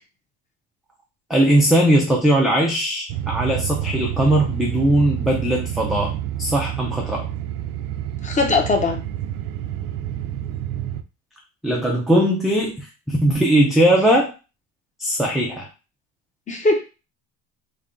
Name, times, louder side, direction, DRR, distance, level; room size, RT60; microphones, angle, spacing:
voice 1, 1.3-7.3 11.6-14.3 15.0-15.7, right 1 dB, ahead, -2 dB, 0.4 m, -19 dB
sound 1, 3.1-11.0, right 12 dB, 60° right, 0.5 m, -28 dB
voice 2, 8.2-9.0 16.5-16.8, left 3 dB, 20° left, 3 dB, 0.8 m, -20 dB
3.5 x 2.3 x 3.7 m, 0.30 s
cardioid pair, 145°, 36 cm